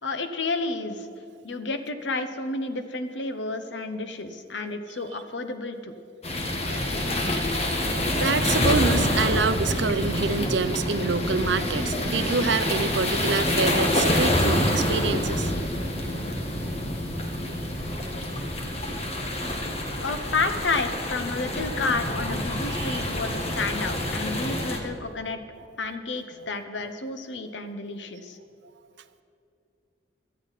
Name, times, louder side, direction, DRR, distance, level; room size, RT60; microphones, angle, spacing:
voice 1, 0.0-1.1 1.4-5.9 20.0-25.4 25.8-28.4, left 3 dB, 70° left, 9 dB, 1.0 m, -30 dB
sound 1, 6.2-24.8, left 1 dB, 35° left, 1.4 m, -27 dB
voice 2, 8.2-15.5 22.7-23.0, right 4 dB, 65° right, 12 dB, 0.6 m, -26 dB
17.5 x 13.0 x 4.1 m, 2.6 s
head